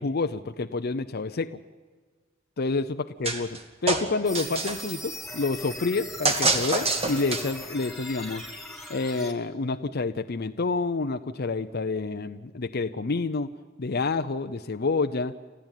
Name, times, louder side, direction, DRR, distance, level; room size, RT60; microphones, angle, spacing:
voice 1, 0.0-1.6 2.6-2.9 3.2-8.4 8.9-13.5 13.8-15.3, left 3 dB, 50° left, 8 dB, 0.6 m, -28 dB
sound 1, 3.2-3.6 3.9-4.9 6.2-7.7, right 3 dB, 30° right, 2.0 m, -26 dB
sound 2, 4.2-9.3, left 1 dB, ahead, 2.3 m, -40 dB
29.0 x 14.5 x 9.1 m, 1.5 s
head